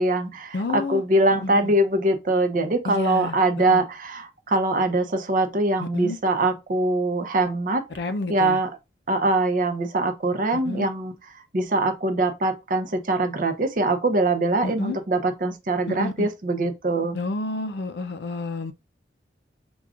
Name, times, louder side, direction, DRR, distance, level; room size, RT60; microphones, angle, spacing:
voice 1, 0.0-7.8 8.3-8.7 9.1-11.1 11.5-17.2, right 2 dB, 50° right, 0.7 m, -23 dB
voice 2, 0.5-1.0 1.4-1.7 2.8-3.4 3.7-3.8 5.8-6.2 7.9-8.6 10.5-10.9 14.6-15.0 15.9-16.3 17.1-18.7, left 3 dB, 65° left, 0.5 m, -30 dB
6.0 x 2.3 x 2.4 m
head